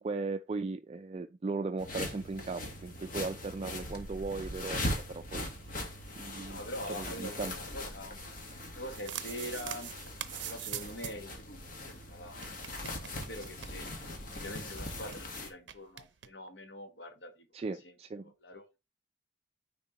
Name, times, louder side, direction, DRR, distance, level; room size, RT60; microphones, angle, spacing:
voice 1, 0.0-4.8 5.1-5.5 6.2-6.6 7.0-7.5 17.5-18.3, right 3 dB, 35° right, 0.3 m, -37 dB
sound 1, 1.8-15.5, left 1 dB, 45° left, 1.4 m, -41 dB
voice 2, 6.4-8.2 8.7-9.9 10.4-13.9 14.3-17.5 17.7-17.9 18.2-18.8, left 1 dB, 70° left, 1.3 m, -44 dB
sound 2, 8.7-11.3 11.6-11.7 11.9-12.0 12.3-14.2 14.5-14.6 14.8-15.2 15.7-16.3, right 11 dB, 70° right, 0.6 m, -43 dB
9.4 x 4.1 x 3.0 m
head